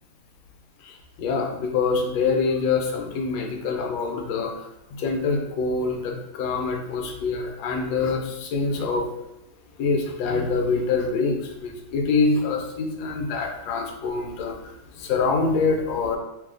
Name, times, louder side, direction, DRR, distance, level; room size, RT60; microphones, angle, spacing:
voice 1, 0.8-9.1 9.8-14.6 15.0-16.2, left 4 dB, 75° left, 2 dB, 1.3 m, -25 dB
3.2 x 2.7 x 3.6 m, 0.90 s
omnidirectional pair, 2.2 m